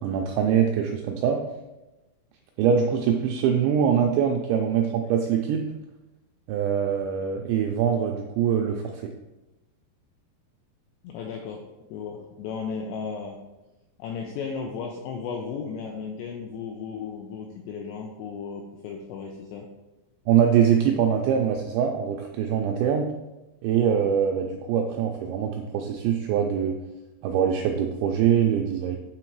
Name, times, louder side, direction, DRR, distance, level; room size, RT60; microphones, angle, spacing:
voice 1, 0.0-1.4 2.6-5.6 6.5-9.0 20.3-23.1 23.6-26.8 27.2-29.0, right 8 dB, 85° right, 2 dB, 2.5 m, -23 dB
voice 2, 11.0-13.4 14.0-19.7, left 5 dB, 85° left, 1 dB, 2.4 m, -35 dB
8.9 x 3.8 x 4.6 m, 1.0 s
omnidirectional pair, 5.6 m